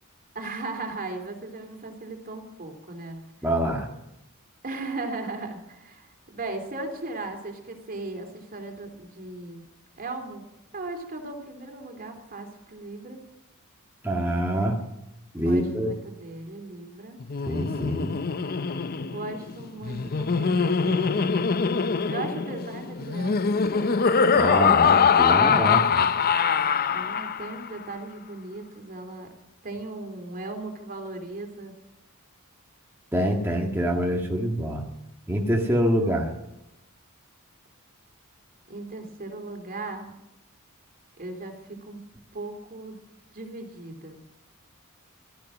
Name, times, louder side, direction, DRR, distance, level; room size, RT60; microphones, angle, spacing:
voice 1, 0.3-3.2 4.6-9.6 10.0-10.4 10.7-13.2 15.4-17.2 19.0-21.3 22.1-24.9 26.8-29.3 29.6-31.7 38.7-40.1 41.2-42.0 42.3-43.0 43.3-44.2, right 2 dB, 40° right, 4 dB, 3.2 m, -37 dB
voice 2, 3.4-3.9 14.0-14.8 15.3-15.9 17.5-18.1 24.4-26.0 33.1-34.8 35.3-36.3, equal, 10° right, -1 dB, 1.8 m, -25 dB
Laughter, 17.2-27.7, left 6 dB, 45° left, 0.6 m, -23 dB
16.5 x 14.0 x 6.2 m, 0.91 s
head